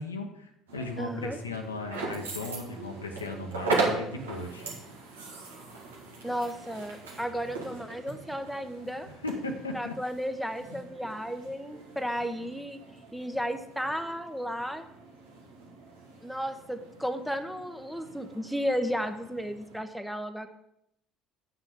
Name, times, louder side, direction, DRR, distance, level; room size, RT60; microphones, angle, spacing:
voice 1, 0.0-4.7 9.2-10.0, left 2 dB, 85° left, 4 dB, 1.0 m, -37 dB
sound 1, 0.7-19.8, right 3 dB, 80° right, 1.7 m, -39 dB
voice 2, 1.0-1.4 6.2-9.1 9.7-12.8 13.1-14.8 16.2-20.5, equal, ahead, 7 dB, 1.0 m, -33 dB
7.5 x 6.0 x 7.0 m, 0.77 s
figure-of-eight pair, 55°, 0 cm